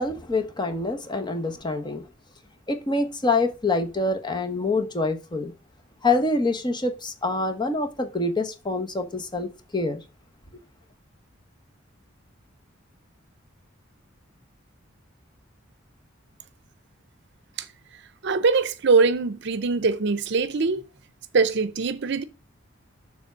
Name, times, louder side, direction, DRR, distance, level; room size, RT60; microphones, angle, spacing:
voice 1, 0.0-2.1 2.7-5.5 6.0-10.0, left 2 dB, 25° left, 1.0 m, -26 dB
voice 2, 18.2-20.8 21.3-22.2, right 4 dB, 60° right, 0.6 m, -22 dB
7.0 x 3.5 x 6.1 m
head